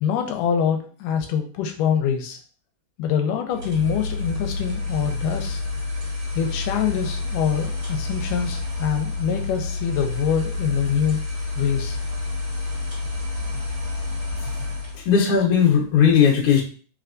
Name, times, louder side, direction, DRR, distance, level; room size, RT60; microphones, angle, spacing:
voice 1, 0.0-2.4 3.0-5.6 6.4-11.2 11.6-12.0, left 8 dB, 85° left, 4 dB, 2.1 m, -24 dB
sound 1, 3.5-15.1, left 3 dB, 35° right, 2.4 m, -29 dB
voice 2, 15.0-16.6, left 7 dB, 60° left, -2 dB, 1.7 m, -17 dB
4.6 x 3.3 x 2.5 m, 0.41 s
omnidirectional pair, 3.7 m